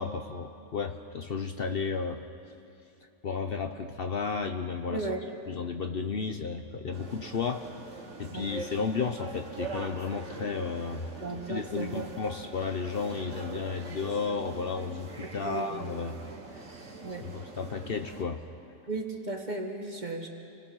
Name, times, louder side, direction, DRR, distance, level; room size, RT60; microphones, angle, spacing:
voice 1, 0.0-2.2 3.2-5.1 5.5-7.6 8.2-11.0 11.5-16.2 17.2-18.4, left 5 dB, 50° left, 6 dB, 1.0 m, -33 dB
voice 2, 4.9-5.3 8.3-8.5 11.2-12.1 15.2-15.9 17.0-17.3 18.9-20.3, right 2 dB, 35° right, 2 dB, 2.0 m, -35 dB
sound 1, 6.9-18.2, right 3 dB, 70° right, 2.1 m, -43 dB
28.5 x 21.0 x 6.4 m, 2.7 s
omnidirectional pair, 1.3 m